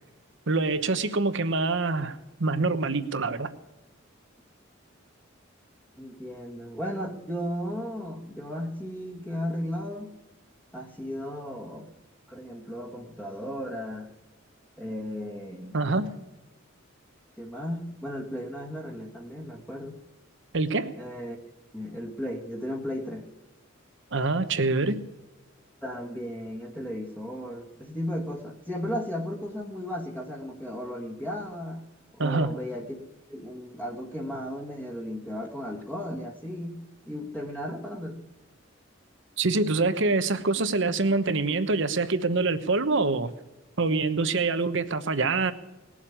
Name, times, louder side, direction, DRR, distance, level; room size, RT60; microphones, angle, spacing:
voice 1, 0.5-3.5 15.7-16.1 20.5-20.9 24.1-25.0 32.2-32.5 39.4-43.3 43.8-45.5, right 3 dB, 65° right, 11 dB, 1.0 m, -25 dB
voice 2, 5.9-10.1 10.7-11.9 12.3-14.1 14.8-15.8 17.4-19.9 21.0-21.4 21.7-23.2 25.8-31.8 32.2-33.0 33.3-36.8 37.1-38.2, equal, 10° left, 0 dB, 1.6 m, -35 dB
19.0 x 7.4 x 8.7 m, 1.1 s
head